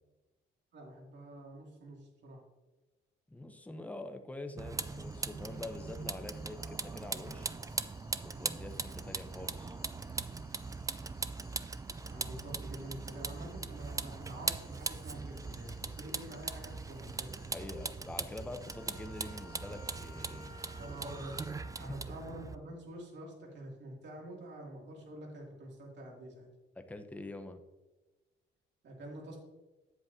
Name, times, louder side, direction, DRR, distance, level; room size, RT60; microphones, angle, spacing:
voice 1, 0.7-2.4 12.1-17.3 20.8-21.4 21.8-26.5 28.8-29.4, right 1 dB, 60° right, -2 dB, 2.8 m, -47 dB
voice 2, 3.3-7.6 8.2-9.8 17.5-20.5 21.8-21.9 26.8-27.6, left 2 dB, 5° left, 7 dB, 0.8 m, -45 dB
Vehicle, 4.6-22.6, right 4 dB, 15° right, 0.4 m, -40 dB
sound 1, 4.8-21.5, left 5 dB, 55° left, 1.5 m, -63 dB
Trumpet, 18.6-22.0, equal, 85° left, 2.4 m, -53 dB
9.2 x 8.1 x 2.8 m, 1.1 s
cardioid pair, 90°, 20 cm